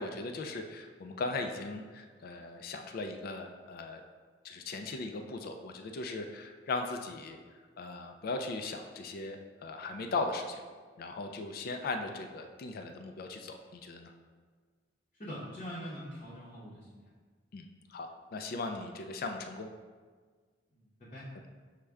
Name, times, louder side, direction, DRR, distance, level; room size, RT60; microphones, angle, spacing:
voice 1, 0.0-4.0 4.4-7.4 7.8-10.6 11.0-14.1 17.5-19.7, left 3 dB, 55° left, 5 dB, 0.3 m, -38 dB
voice 2, 15.2-17.0 20.7-21.3, equal, 35° left, -9 dB, 0.8 m, -43 dB
6.2 x 2.2 x 3.4 m, 1.5 s
head